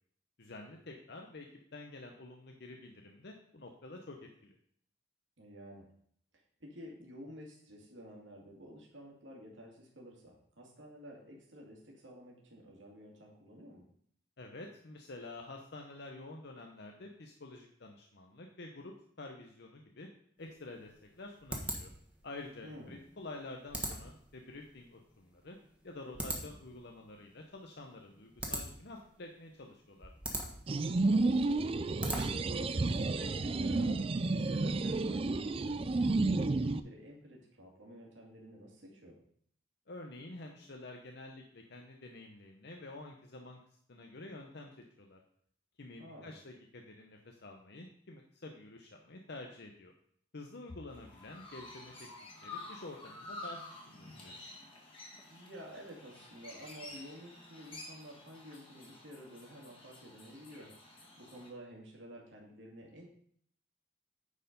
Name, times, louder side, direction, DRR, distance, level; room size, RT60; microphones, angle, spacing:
voice 1, 0.4-1.5 1.7-4.5 14.4-20.1 20.4-21.9 22.2-25.6 25.8-30.1 39.9-43.6 43.9-45.2 45.8-49.9 50.3-51.9 52.4-53.6 53.9-54.4, left 2 dB, 60° left, 2 dB, 0.9 m, -49 dB
voice 2, 5.4-5.9 6.6-13.8 22.6-23.1 31.0-31.7 32.2-39.2 46.0-46.4 55.1-63.1, equal, 75° right, -2 dB, 2.3 m, -51 dB
sound 1, 20.4-32.6, right 1 dB, 5° right, 1.3 m, -43 dB
sound 2, 30.7-36.8, right 3 dB, 30° right, 0.4 m, -31 dB
Chirp tweet, 50.9-61.5, left 2 dB, 30° left, 1.9 m, -50 dB
9.7 x 4.5 x 5.3 m, 0.63 s
head